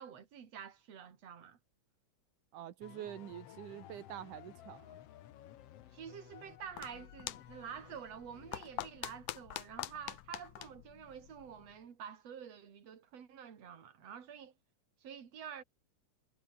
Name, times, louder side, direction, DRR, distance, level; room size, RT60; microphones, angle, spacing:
voice 1, 0.0-1.6 5.9-14.5 15.0-15.6, right 8 dB, 55° right, 3.6 m, -48 dB
voice 2, 2.5-5.0, right 11 dB, 85° right, 2.9 m, -46 dB
sound 1, 2.8-9.3, left 12 dB, 60° left, 1.8 m, -56 dB
sound 2, 6.4-11.8, left 14 dB, 80° left, 2.5 m, -46 dB
omnidirectional pair, 3.5 m